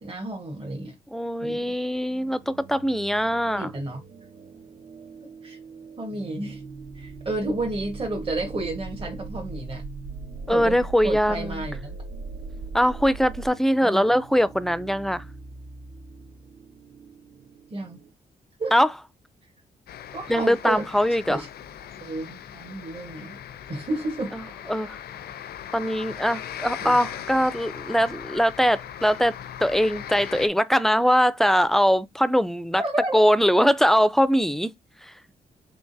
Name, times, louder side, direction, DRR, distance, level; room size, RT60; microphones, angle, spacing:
voice 1, 0.0-0.9 1.4-1.7 3.6-4.0 5.4-5.6 6.0-6.6 6.9-9.8 10.5-11.9 13.8-14.0 17.7-18.0 18.6-18.7 20.1-20.9 21.3-21.5 22.0-23.4 23.7-24.4 26.8-27.0 32.8-33.2, right 2 dB, 35° right, 1.3 m, -31 dB
voice 2, 1.1-3.7 10.5-11.6 12.7-15.2 18.7-18.9 20.3-21.4 24.3-24.4 24.7-25.0 25.7-29.3 29.6-32.8 33.1-34.7, equal, ahead, 0.4 m, -22 dB
sound 1, 2.1-18.1, right 4 dB, 70° right, 1.8 m, -45 dB
sound 2, 6.8-13.5, right 3 dB, 85° right, 0.5 m, -39 dB
sound 3, 19.9-30.5, left 10 dB, 80° left, 0.5 m, -39 dB
3.8 x 3.6 x 2.6 m
cardioid pair, 70°, 16 cm